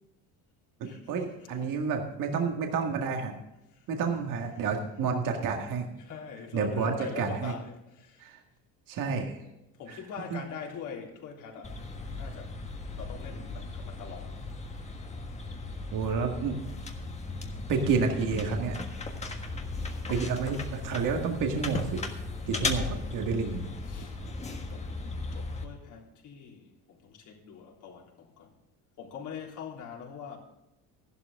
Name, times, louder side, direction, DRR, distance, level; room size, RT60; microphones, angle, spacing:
voice 1, 0.8-3.3 3.9-5.9 6.5-7.5 8.2-8.4 8.9-9.4 9.9-10.0 10.3-10.4 15.9-16.6 17.7-18.8 20.1-22.0 22.5-23.7, right 5 dB, 60° right, 1.9 m, -30 dB
voice 2, 6.0-8.3 9.8-12.6 13.0-14.5 19.8-20.3 23.9-24.2 24.6-28.5 29.0-30.4, left 6 dB, 55° left, 3.5 m, -43 dB
sound 1, 11.6-25.6, left 3 dB, 20° left, 1.5 m, -37 dB
14.0 x 12.0 x 3.7 m
cardioid pair, 130°, 36 cm